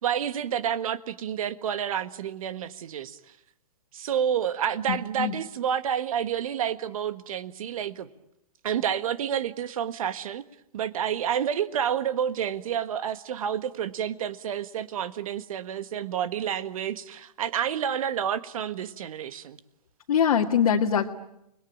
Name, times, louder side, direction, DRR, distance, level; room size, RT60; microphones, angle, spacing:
voice 1, 0.0-3.2 3.9-8.1 8.6-10.4 10.7-19.6, right 9 dB, 60° right, 1.6 m, -29 dB
voice 2, 4.9-5.3 20.1-21.1, left 7 dB, 65° left, 2.0 m, -23 dB
29.5 x 21.5 x 8.9 m
hypercardioid pair, 135°, 20 cm